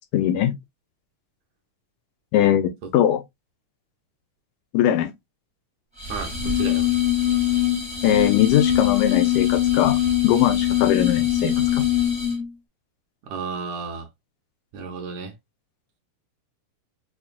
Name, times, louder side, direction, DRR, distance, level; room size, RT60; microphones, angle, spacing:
voice 1, 0.1-0.6 2.3-3.2 4.7-5.1 8.0-11.8, left 11 dB, 80° left, 2.1 m, -21 dB
sound 1, 6.0-12.5, left 11 dB, 5° right, 0.6 m, -22 dB
voice 2, 6.1-6.9 13.2-14.1 14.7-15.3, right 4 dB, 70° right, 2.0 m, -32 dB
5.8 x 2.4 x 2.3 m
omnidirectional pair, 3.6 m